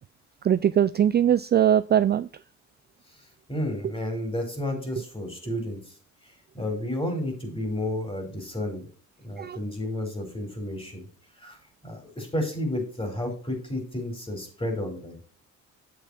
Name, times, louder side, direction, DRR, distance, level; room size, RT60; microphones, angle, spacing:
voice 1, 0.4-2.3 9.4-9.6, right 10 dB, 35° right, 15 dB, 0.4 m, -21 dB
voice 2, 3.5-5.9 6.5-8.9 9.2-11.1 11.4-11.6 11.8-15.2, left 1 dB, 20° left, 5 dB, 4.5 m, -31 dB
8.5 x 7.0 x 4.3 m, 0.40 s
cardioid pair, 90°, 30 cm